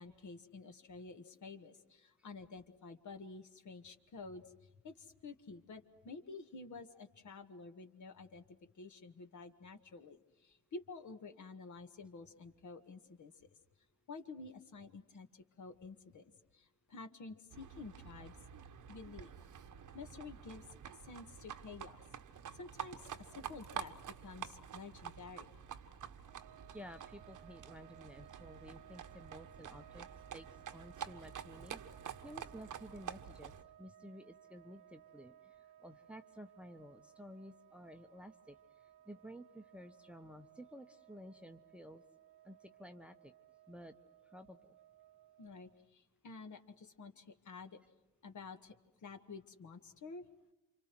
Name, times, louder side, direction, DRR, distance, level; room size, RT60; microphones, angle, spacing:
voice 1, 0.0-8.4 8.8-13.3 14.1-16.2 16.5-18.4 18.9-19.3 19.9-20.6 21.0-22.0 22.5-25.5 45.4-47.8 48.2-48.8 49.0-50.3, left 4 dB, 45° left, 6 dB, 1.9 m, -51 dB
Livestock farm animals working animals, 17.5-33.6, right 9 dB, 45° right, 1.4 m, -49 dB
sound 1, 26.2-45.9, right 12 dB, 65° right, 0.8 m, -61 dB
voice 2, 26.7-31.8 32.2-33.5 33.8-42.0 42.4-43.3 43.7-43.9 44.2-44.8, equal, 5° right, 7 dB, 1.2 m, -53 dB
29.0 x 26.0 x 6.2 m, 1.0 s
hypercardioid pair, 50°, 41 cm